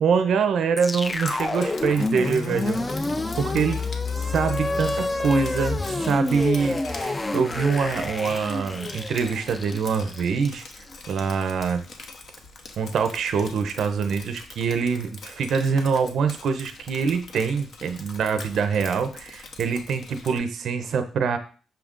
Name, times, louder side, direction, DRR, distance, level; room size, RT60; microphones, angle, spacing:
voice 1, 0.0-2.8 3.4-3.8 4.3-6.8 7.0-10.6 11.1-11.8 12.8-21.4, right 5 dB, 65° right, 8 dB, 0.5 m, -24 dB
sound 1, 0.8-11.0, left 2 dB, 20° left, 0.3 m, -28 dB
Drip, 1.0-20.4, left 3 dB, 60° left, 0.7 m, -44 dB
5.7 x 2.4 x 3.5 m, 0.38 s
cardioid pair, 90°, 0 cm